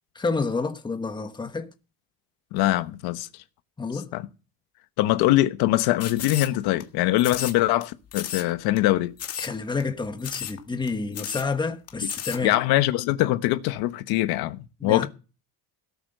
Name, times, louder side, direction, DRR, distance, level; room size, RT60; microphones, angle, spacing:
voice 1, 0.1-1.7 3.8-4.1 9.4-12.6 14.8-15.1, left 4 dB, 10° left, 1.3 m, -29 dB
voice 2, 2.5-3.3 4.1-4.3 5.0-9.1 12.4-15.1, left 16 dB, 85° left, 1.2 m, -23 dB
sound 1, 6.0-6.8 7.2-7.8 8.1-8.5 8.8-8.9 9.2-9.5 9.8-9.9 10.2-10.6 10.9-11.0 11.1-11.5 11.9-12.4, left 10 dB, 40° left, 1.8 m, -33 dB
17.0 x 8.2 x 6.7 m
cardioid pair, 150°, 37 cm